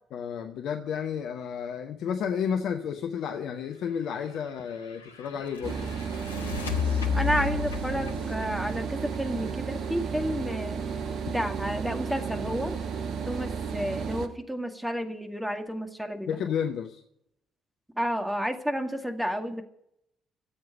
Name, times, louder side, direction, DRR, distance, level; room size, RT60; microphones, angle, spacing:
voice 1, 0.1-5.9 11.0-11.3 16.3-17.0, left 7 dB, 55° left, 6 dB, 0.8 m, -32 dB
sound 1, 4.1-9.9, left 7 dB, 85° left, 0.8 m, -33 dB
sound 2, 5.6-14.3, right 6 dB, 55° right, 1.0 m, -33 dB
voice 2, 7.1-10.8 11.3-12.8 13.3-16.4 17.9-19.6, equal, 5° right, 5 dB, 2.1 m, -31 dB
14.0 x 7.7 x 9.2 m, 0.75 s
figure-of-eight pair, 45°, 0 cm